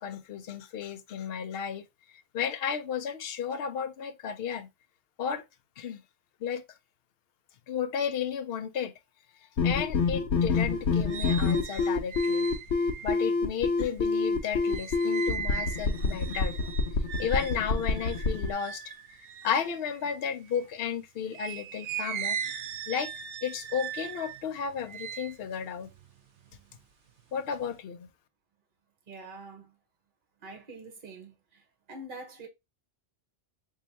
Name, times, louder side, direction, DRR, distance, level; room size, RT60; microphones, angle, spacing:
voice 1, 0.0-1.8 2.3-4.7 5.2-5.4 5.8-6.0 6.4-6.6 7.7-8.9 9.6-12.5 13.0-16.7 17.2-18.8 19.4-22.4 22.9-23.1 23.4-25.9 27.3-28.1, left 7 dB, 65° left, 0.8 m, -33 dB
sound 1, 9.6-18.5, left 4 dB, 85° left, 1.1 m, -27 dB
sound 2, 10.6-20.8 21.3-26.8 27.2-27.8, right 8 dB, 80° right, 0.9 m, -40 dB
voice 2, 29.1-29.7 30.4-31.6 31.9-32.5, right 2 dB, 50° right, 1.2 m, -45 dB
3.2 x 2.8 x 3.9 m
omnidirectional pair, 1.2 m